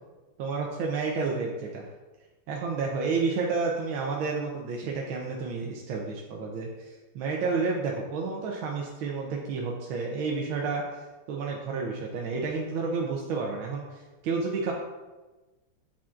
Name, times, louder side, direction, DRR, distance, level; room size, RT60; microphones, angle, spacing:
voice 1, 0.4-1.9 2.5-10.8 11.3-14.7, right 4 dB, 75° right, -1 dB, 1.5 m, -30 dB
8.6 x 5.8 x 2.4 m, 1.2 s
omnidirectional pair, 2.4 m